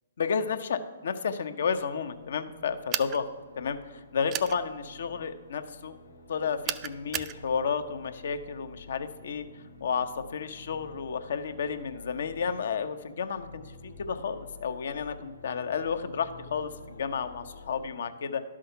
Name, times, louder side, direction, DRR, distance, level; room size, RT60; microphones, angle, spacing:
voice 1, 0.2-3.3 3.6-5.9 6.3-9.5 9.8-13.7 14.0-18.4, left 6 dB, 65° left, 9 dB, 0.8 m, -32 dB
sound 1, 1.7-17.9, left 3 dB, 90° left, 1.1 m, -50 dB
sound 2, 2.9-3.2 4.3-4.6 6.7-7.4, right 11 dB, 25° right, 0.4 m, -32 dB
11.5 x 6.2 x 5.7 m, 1.5 s
hypercardioid pair, 130°, 0 cm